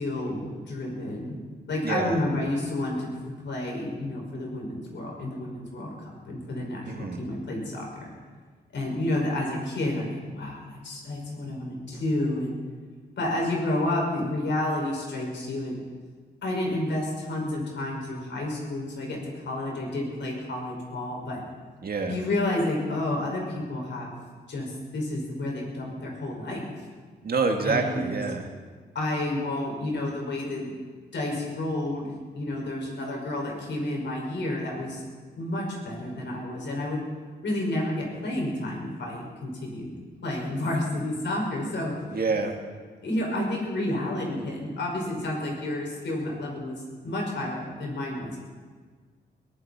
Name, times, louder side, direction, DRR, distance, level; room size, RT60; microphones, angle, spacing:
voice 1, 0.0-1.4 1.7-3.1 3.4-8.1 8.7-12.6 13.2-15.8 16.4-21.4 22.1-24.1 24.5-26.7 27.6-28.1 28.9-30.7 31.1-35.0 35.3-37.0 37.4-40.0 40.2-41.9 43.0-48.4, left 1 dB, 80° left, -1 dB, 5.7 m, -30 dB
voice 2, 1.8-2.2 6.9-7.2 21.8-22.2 27.2-28.5 42.1-42.6, right 4 dB, 55° right, 3 dB, 2.0 m, -27 dB
22.0 x 15.0 x 4.4 m, 1.5 s
cardioid pair, 80°, 19 cm